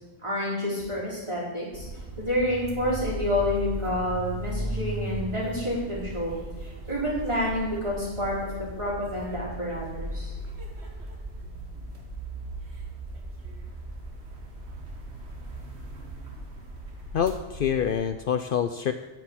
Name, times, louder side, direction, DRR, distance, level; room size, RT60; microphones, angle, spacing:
voice 1, 0.2-1.8 2.2-10.3, left 1 dB, 25° right, -7 dB, 4.6 m, -29 dB
sound 1, 1.7-18.1, right 1 dB, 80° right, 1.7 m, -37 dB
voice 2, 17.1-18.9, left 8 dB, 60° left, 9 dB, 0.7 m, -26 dB
10.0 x 6.2 x 8.8 m, 1.1 s
omnidirectional pair, 1.1 m